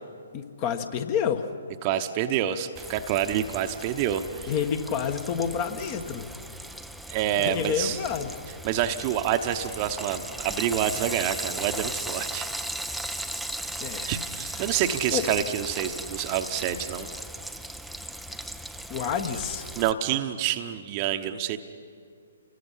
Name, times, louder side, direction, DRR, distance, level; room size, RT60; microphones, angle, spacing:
voice 1, 0.3-1.5 4.5-6.3 7.4-8.4 13.8-14.1 15.1-15.3 18.9-19.7, left 7 dB, 35° left, 8 dB, 1.4 m, -29 dB
voice 2, 1.8-4.5 7.1-8.0 8.6-12.5 14.1-17.1 19.8-21.6, right 10 dB, 30° right, 7 dB, 1.0 m, -27 dB
Frying (food), 2.7-19.9, right 1 dB, ahead, 0.6 m, -37 dB
28.0 x 21.0 x 5.7 m, 2.3 s
figure-of-eight pair, 130°, 0 cm